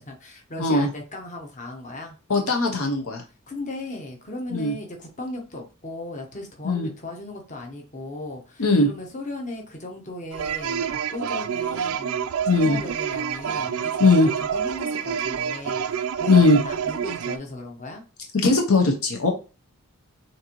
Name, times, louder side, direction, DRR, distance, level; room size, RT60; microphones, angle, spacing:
voice 1, 0.0-2.2 3.5-18.0, left 2 dB, 35° left, 2 dB, 1.1 m, -37 dB
voice 2, 2.3-3.2 4.5-4.7 6.6-6.9 8.6-8.9 12.5-12.8 14.0-14.3 16.3-16.6 18.3-19.3, left 3 dB, 70° left, 3 dB, 0.8 m, -19 dB
sound 1, 10.3-17.4, right 7 dB, 70° right, 0.3 m, -28 dB
6.4 x 2.7 x 3.0 m, 0.32 s
head